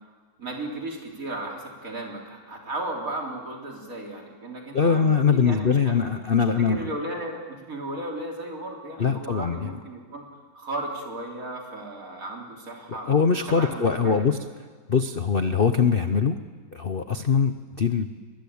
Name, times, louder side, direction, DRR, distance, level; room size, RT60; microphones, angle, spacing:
voice 1, 0.4-5.9 6.4-10.2 10.5-13.1 13.5-14.2, right 2 dB, 40° right, 0 dB, 4.0 m, -35 dB
voice 2, 4.7-6.9 9.0-9.7 12.9-14.4 14.9-16.4 16.7-18.1, left 6 dB, 90° left, 9 dB, 0.5 m, -22 dB
23.5 x 21.5 x 8.6 m, 1.5 s
omnidirectional pair, 2.3 m